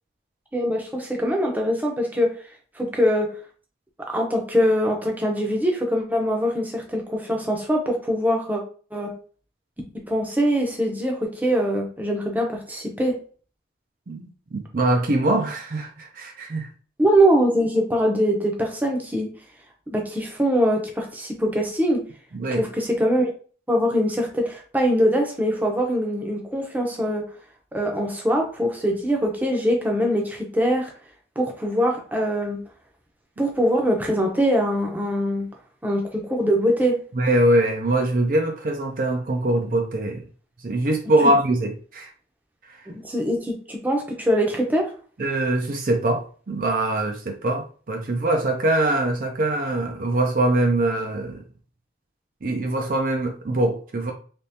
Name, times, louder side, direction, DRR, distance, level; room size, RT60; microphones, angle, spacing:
voice 1, 0.5-2.3 2.8-3.3 4.0-8.6 8.9-9.1 10.1-13.2 17.0-19.3 19.9-22.0 22.6-23.3 23.7-27.2 27.7-30.9 31.4-32.6 33.4-35.5 35.8-37.0 41.2-41.3 42.9-44.9, equal, 10° right, 0.6 m, -23 dB
voice 2, 14.1-16.7 22.3-22.7 37.1-40.3 40.6-42.1 42.7-42.8 45.2-51.4 52.4-54.1, right 1 dB, 50° right, 0.5 m, -23 dB
3.5 x 3.0 x 2.7 m
head